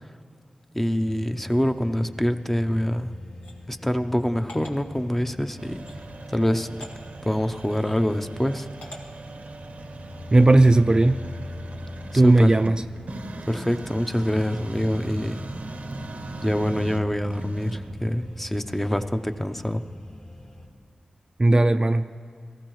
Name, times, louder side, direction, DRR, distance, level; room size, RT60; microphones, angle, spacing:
voice 1, 0.7-3.1 3.7-5.8 6.3-6.7 7.2-8.7 12.1-12.5 13.5-15.4 16.4-19.8, equal, 10° left, 8 dB, 0.6 m, -25 dB
sound 1, 1.1-20.7, left 2 dB, 50° left, 3.0 m, -43 dB
sound 2, 3.4-3.6 4.5-4.8 5.8-6.0 6.8-6.9 7.7-7.9 8.8-9.0, left 1 dB, 85° left, 1.7 m, -43 dB
sound 3, 5.6-19.1, right 2 dB, 70° right, 0.7 m, -40 dB
voice 2, 10.3-11.2 12.1-12.8 21.4-22.1, right 2 dB, 30° right, 9 dB, 0.4 m, -17 dB
18.0 x 14.5 x 3.1 m, 2.3 s
cardioid pair, 50°, 3 cm